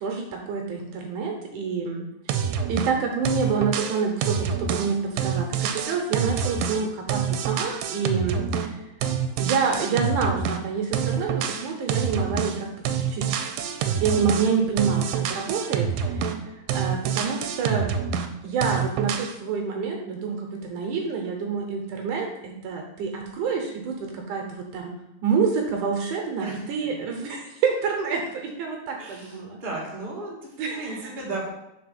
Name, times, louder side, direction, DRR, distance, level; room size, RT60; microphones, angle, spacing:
voice 1, 0.0-2.1 2.7-5.0 5.2-8.4 9.4-12.7 12.9-13.3 13.8-16.2 16.7-17.9 18.4-24.9 25.2-29.6 30.6-31.1, right 5 dB, 70° right, 2 dB, 2.3 m, -27 dB
sound 1, 2.3-3.0 3.3-8.8 9.0-10.6 10.9-12.6 12.9-16.4 16.7-18.3 18.6-19.3, right 7 dB, 85° right, 2.4 m, -27 dB
voice 2, 26.4-26.9 29.0-30.5 30.7-31.5, right 2 dB, 20° right, -3 dB, 1.3 m, -35 dB
5.5 x 4.4 x 5.9 m, 0.87 s
omnidirectional pair, 4.0 m